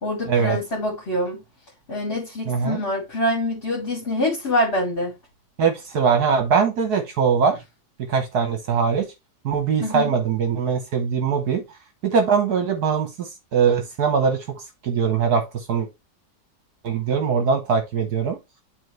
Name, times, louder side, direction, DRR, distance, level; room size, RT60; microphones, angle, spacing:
voice 1, 0.0-1.4 1.9-5.1 9.8-10.1, left 1 dB, 35° left, 2.6 m, -25 dB
voice 2, 2.5-2.8 5.6-7.5 8.1-9.1 9.4-11.6 12.0-14.4 14.8-15.9 16.8-18.4, right 6 dB, 65° right, 1.6 m, -21 dB
10.0 x 4.0 x 3.2 m
omnidirectional pair, 1.8 m